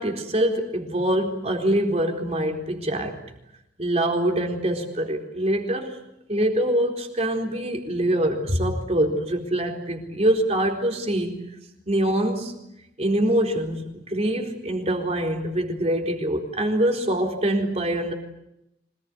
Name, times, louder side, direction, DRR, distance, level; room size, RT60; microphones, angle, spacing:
voice 1, 0.0-3.2 3.8-6.0 6.3-11.4 11.9-12.5 13.0-18.1, right 1 dB, 35° right, 2 dB, 4.1 m, -24 dB
25.5 x 19.5 x 9.7 m, 0.85 s
head